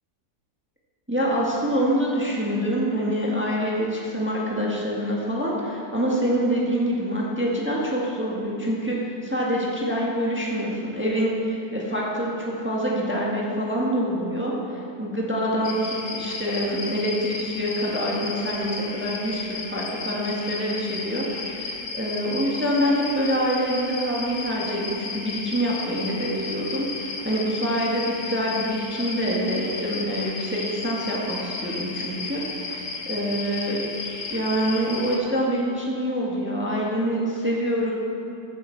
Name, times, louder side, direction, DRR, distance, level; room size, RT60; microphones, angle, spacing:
voice 1, 1.1-33.9 34.3-37.9, equal, 5° right, -4 dB, 1.5 m, -26 dB
sound 1, 15.6-35.2, left 4 dB, 50° left, 1.3 m, -34 dB
15.0 x 8.2 x 4.6 m, 2.8 s
omnidirectional pair, 1.8 m